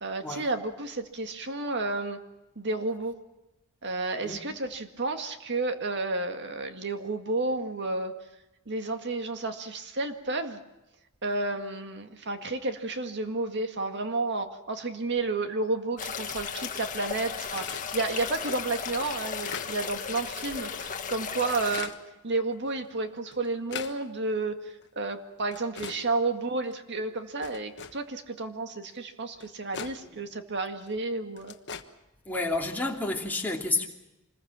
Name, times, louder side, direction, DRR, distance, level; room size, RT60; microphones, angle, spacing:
voice 1, 0.0-2.2 2.6-3.2 3.8-8.1 8.7-10.6 11.2-21.9 22.2-31.5, right 3 dB, 55° right, 2.0 m, -31 dB
sound 1, 16.0-21.8, left 6 dB, 35° left, 1.6 m, -35 dB
sound 2, 17.6-17.9 18.5-18.6 19.1-19.7 20.7-20.8 21.5-22.0 22.9-23.0 23.3-24.0 24.8-24.9 25.5-26.0 26.7-26.8 27.4-28.0 29.0-29.1 29.4-30.0 30.8-30.9 31.4-31.8, left 6 dB, 50° left, 1.4 m, -39 dB
voice 2, 32.2-33.9, left 2 dB, 10° left, 2.9 m, -30 dB
26.0 x 21.0 x 7.5 m
head